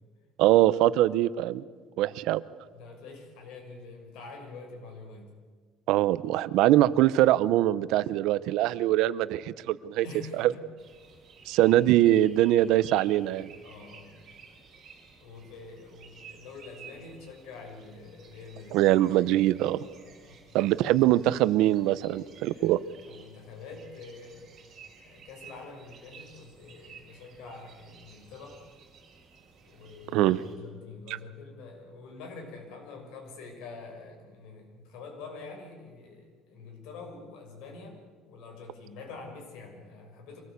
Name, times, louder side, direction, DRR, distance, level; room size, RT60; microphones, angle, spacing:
voice 1, 0.4-1.6 2.0-2.4 5.9-10.1 10.4-10.5 11.5-13.5 18.7-19.8 20.5-22.8 30.1-30.4 31.1-31.2, right 14 dB, 70° right, 16 dB, 0.8 m, -23 dB
voice 2, 2.7-5.3 10.0-10.7 11.6-11.8 13.6-14.2 15.2-18.9 20.0-20.4 22.5-24.5 25.0-28.6 29.6-40.4, left 4 dB, 80° left, 2 dB, 6.3 m, -46 dB
sound 1, 10.8-30.5, right 6 dB, 35° right, 5.3 m, -54 dB
24.5 x 18.5 x 8.3 m, 1.5 s
cardioid pair, 175°, 0 cm